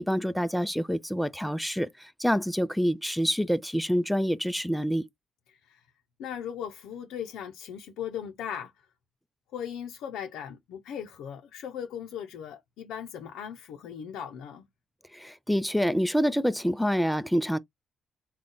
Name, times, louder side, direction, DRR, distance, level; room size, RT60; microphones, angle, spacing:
voice 1, 0.0-5.1 15.1-17.6, equal, ahead, 0.5 m, -27 dB
voice 2, 5.5-5.9 6.2-8.8 9.5-14.7, left 9 dB, 85° left, 0.5 m, -38 dB
3.8 x 2.2 x 3.6 m
cardioid pair, 90°, 0 cm